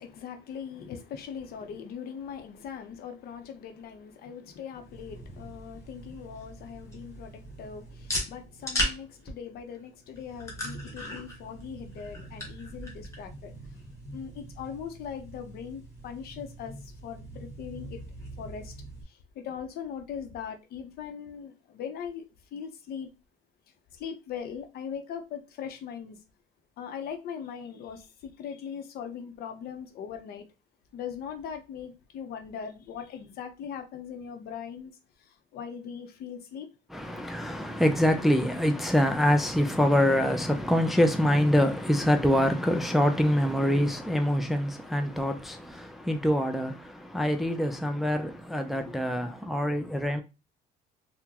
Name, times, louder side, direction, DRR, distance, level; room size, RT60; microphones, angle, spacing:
voice 1, 0.0-13.6 14.1-18.0 18.4-18.7 19.1-22.2 22.5-23.1 23.9-26.2 26.8-30.5 30.9-34.9 35.2-36.7 48.8-48.9, left 7 dB, 65° left, 0.7 m, -40 dB
sound 1, 4.8-19.0, equal, 15° left, 1.2 m, -39 dB
voice 2, 36.9-50.2, equal, ahead, 0.4 m, -25 dB
3.7 x 2.1 x 2.8 m
cardioid pair, 110°, 17 cm